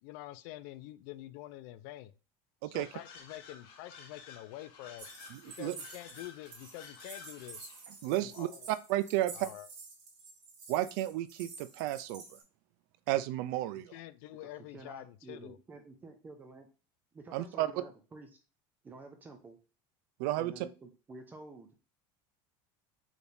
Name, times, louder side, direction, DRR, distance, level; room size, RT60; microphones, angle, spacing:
voice 1, 0.0-2.1 2.7-5.1 5.6-7.7 8.2-8.7 9.3-9.7 13.9-15.6, left 15 dB, 60° left, 15 dB, 0.4 m, -47 dB
sound 1, 2.7-7.9, left 6 dB, 90° left, 1.1 m, -53 dB
sound 2, 5.0-12.4, right 4 dB, 35° right, 1.8 m, -50 dB
voice 2, 5.3-5.7 8.0-9.5 10.7-12.2 13.1-13.9 17.3-17.7 20.2-20.7, right 14 dB, 65° right, 14 dB, 0.4 m, -32 dB
voice 3, 14.4-16.7 17.1-18.4 18.8-19.6 20.4-21.7, right 3 dB, 15° right, 4 dB, 0.5 m, -50 dB
4.8 x 3.3 x 2.6 m, 0.33 s
cardioid pair, 165°, 12 cm